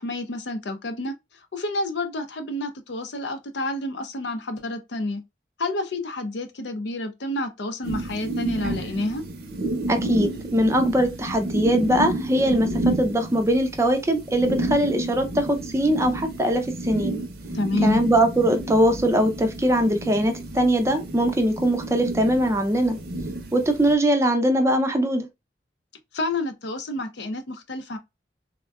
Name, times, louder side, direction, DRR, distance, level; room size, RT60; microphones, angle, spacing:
voice 1, 0.0-5.2 5.6-9.2 17.5-18.0 26.1-28.0, left 2 dB, 75° left, 0.6 m, -29 dB
sound 1, 7.8-23.9, right 2 dB, 55° right, 0.6 m, -31 dB
voice 2, 9.9-17.2 17.8-23.0 23.5-25.3, right 1 dB, 15° right, 0.4 m, -21 dB
3.5 x 2.2 x 2.2 m
head